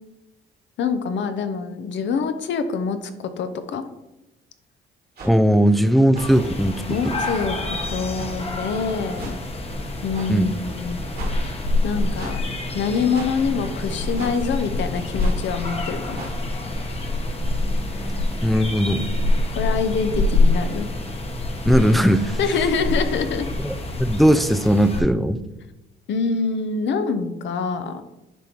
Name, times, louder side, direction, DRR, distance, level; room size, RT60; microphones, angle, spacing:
voice 1, 0.8-3.0 3.4-3.8 6.9-9.3 10.0-11.0 11.8-12.4 12.7-16.3 19.5-20.9 22.4-23.5 26.1-28.0, left 5 dB, 65° left, 10 dB, 0.7 m, -25 dB
voice 2, 5.2-6.7 7.0-7.1 10.3-10.5 18.4-19.0 21.6-22.4 23.6-23.7 24.0-25.4, equal, ahead, 9 dB, 0.4 m, -18 dB
sound 1, 5.2-5.3 6.1-6.3 7.2-7.3 8.1-8.3 9.2-9.3 10.1-10.3 11.1-11.3 12.2-12.4 13.1-13.3 14.2-14.4 15.2-15.4 16.1-16.3, right 2 dB, 50° right, 1.7 m, -35 dB
sound 2, 6.2-25.0, left 2 dB, 30° left, 1.0 m, -26 dB
10.0 x 3.5 x 2.9 m, 0.95 s
cardioid pair, 90°, 20 cm